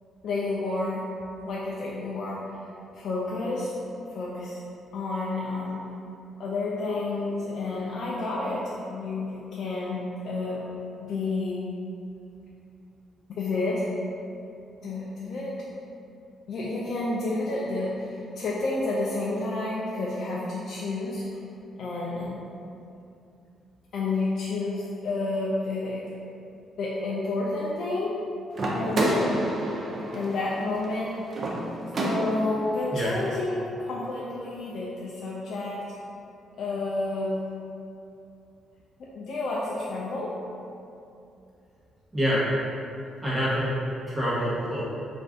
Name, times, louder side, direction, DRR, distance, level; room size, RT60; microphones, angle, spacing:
voice 1, 0.2-1.0 1.4-2.4 2.9-3.7 4.1-4.6 4.9-5.9 6.4-10.7 11.0-11.6 13.4-13.9 14.8-15.6 16.5-21.4 21.8-22.4 23.9-26.0 26.8-28.2 28.7-29.4 30.1-31.5 32.0-35.8 36.6-37.4 39.1-40.3, left 2 dB, 65° left, -5 dB, 0.3 m, -30 dB
sound 1, 28.5-32.6, right 1 dB, 45° right, 0.5 m, -29 dB
voice 2, 42.1-42.4 43.2-43.7 44.0-44.8, equal, 15° right, -10 dB, 0.9 m, -26 dB
2.5 x 2.4 x 3.5 m, 2.7 s
cardioid pair, 90°, 0 cm